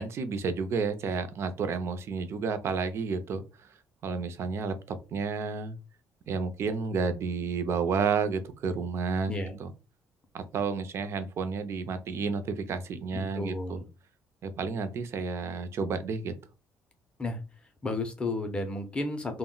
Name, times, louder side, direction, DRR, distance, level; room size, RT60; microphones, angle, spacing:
voice 1, 0.0-3.4 4.0-5.8 6.3-9.7 10.3-13.8 14.4-16.3, right 5 dB, 45° right, 10 dB, 0.4 m, -31 dB
voice 2, 13.1-13.9 17.2-17.4 17.8-19.4, left 2 dB, 15° left, 6 dB, 0.5 m, -32 dB
2.2 x 2.1 x 3.7 m, 0.30 s
cardioid pair, 165°, 6 cm